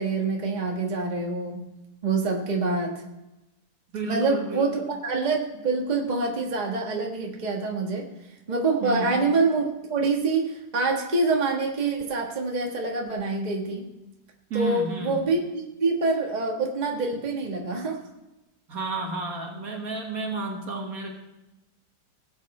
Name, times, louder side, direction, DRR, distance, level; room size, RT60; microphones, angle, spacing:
voice 1, 0.0-1.6 2.0-3.0 4.0-8.0 8.5-13.9 14.5-18.0, right 3 dB, 25° right, 0 dB, 1.5 m, -26 dB
voice 2, 3.9-4.9 8.8-9.2 14.5-15.2 18.7-21.1, right 3 dB, 60° right, 1 dB, 2.0 m, -31 dB
17.5 x 8.3 x 3.3 m, 0.98 s
omnidirectional pair, 1.8 m